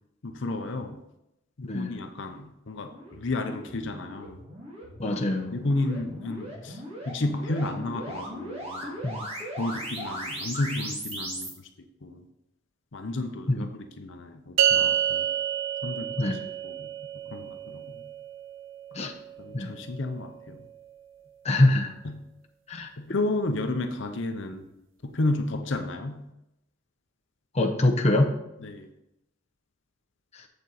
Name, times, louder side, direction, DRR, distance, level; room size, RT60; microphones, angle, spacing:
voice 1, 0.2-1.0 1.6-4.4 5.0-5.2 5.5-9.0 9.6-11.7 12.0-12.2 12.9-15.3 15.8-16.9 17.3-18.0 19.4-20.7 22.0-22.3 23.0-24.6 25.0-26.3 28.6-28.9, left 2 dB, 60° left, 6 dB, 0.7 m, -32 dB
voice 2, 1.7-2.0 5.0-5.6 9.0-9.2 13.5-13.7 16.2-16.4 18.9-19.1 19.5-19.7 21.4-21.9 22.7-22.9 27.5-28.3 30.3-30.4, left 1 dB, 30° left, 3 dB, 0.8 m, -24 dB
sound 1, 2.9-11.5, right 1 dB, 30° right, 2.1 m, -38 dB
sound 2, 14.6-21.1, right 9 dB, 65° right, 0.6 m, -30 dB
7.8 x 6.8 x 4.0 m, 0.87 s
head